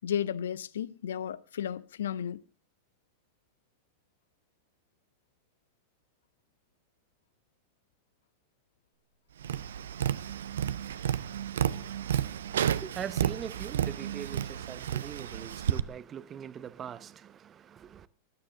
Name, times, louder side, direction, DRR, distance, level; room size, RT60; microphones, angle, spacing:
voice 1, 0.0-2.4, left 9 dB, 60° left, 0.7 m, -33 dB
Tap, 9.4-15.8, right 10 dB, 65° right, 0.6 m, -31 dB
voice 2, 11.5-18.1, right 9 dB, 25° right, 0.8 m, -42 dB
20.0 x 12.0 x 3.8 m
figure-of-eight pair, 90°, 0 cm